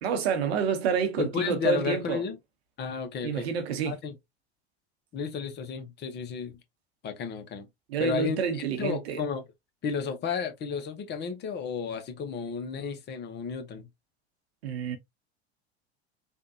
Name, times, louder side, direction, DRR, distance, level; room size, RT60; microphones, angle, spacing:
voice 1, 0.0-2.2 3.2-4.0 7.9-9.2 14.6-15.0, right 6 dB, 70° right, 1.0 m, -28 dB
voice 2, 1.2-2.4 2.8-3.5 3.8-4.2 5.1-6.6 7.0-7.7 8.0-9.4 9.8-13.9, left 6 dB, 30° left, 0.8 m, -32 dB
3.5 x 2.3 x 2.6 m
hypercardioid pair, 90°, 33 cm